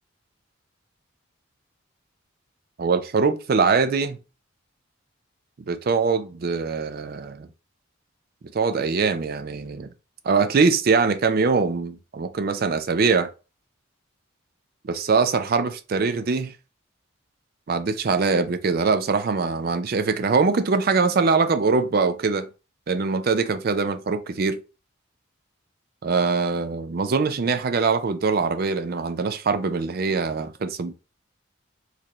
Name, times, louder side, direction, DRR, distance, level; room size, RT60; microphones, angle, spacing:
voice 1, 2.8-4.2 5.7-7.5 8.5-9.9 10.2-13.3 14.9-16.5 17.7-22.5 22.9-24.6 26.0-30.9, right 4 dB, 45° right, 0.4 m, -22 dB
4.4 x 2.6 x 3.0 m
head